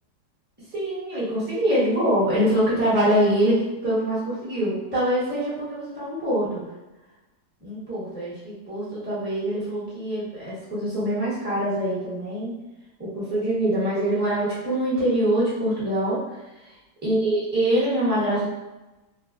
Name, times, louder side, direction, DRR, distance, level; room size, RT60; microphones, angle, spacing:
voice 1, 0.7-6.6 7.6-12.5 13.0-16.4 17.0-18.5, right 1 dB, 10° right, -10 dB, 0.8 m, -24 dB
3.2 x 2.2 x 2.4 m, 1.0 s
omnidirectional pair, 2.0 m